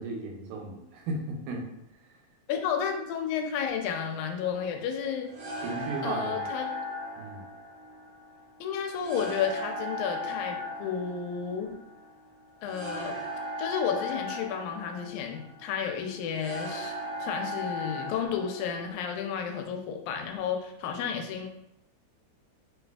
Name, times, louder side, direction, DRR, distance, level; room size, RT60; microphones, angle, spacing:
voice 1, 0.0-1.6 5.6-6.4 7.2-7.4, right 2 dB, 85° right, 1 dB, 2.0 m, -35 dB
voice 2, 2.5-5.3 6.0-6.7 8.6-11.8 12.6-13.2 13.6-17.0 17.2-21.5, left 7 dB, 90° left, 4 dB, 2.0 m, -32 dB
sound 1, 3.7-19.0, left 1 dB, 70° right, 1.3 m, -38 dB
4.5 x 2.5 x 2.3 m, 0.84 s
omnidirectional pair, 3.4 m